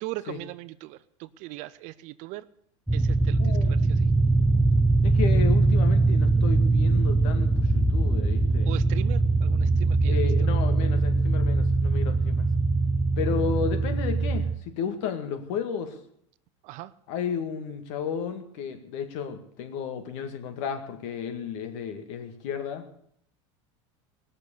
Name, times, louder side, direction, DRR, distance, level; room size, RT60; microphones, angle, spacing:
voice 1, 0.0-2.5 2.9-4.1 8.6-10.3 16.6-16.9, right 18 dB, 50° right, 16 dB, 0.7 m, -39 dB
sound 1, 2.9-14.5, right 3 dB, ahead, 0.6 m, -22 dB
voice 2, 3.4-3.7 5.0-8.7 10.1-12.5 13.2-16.0 17.1-22.8, left 7 dB, 65° left, 8 dB, 2.1 m, -33 dB
20.0 x 6.7 x 8.4 m, 0.67 s
supercardioid pair, 130°, 16 cm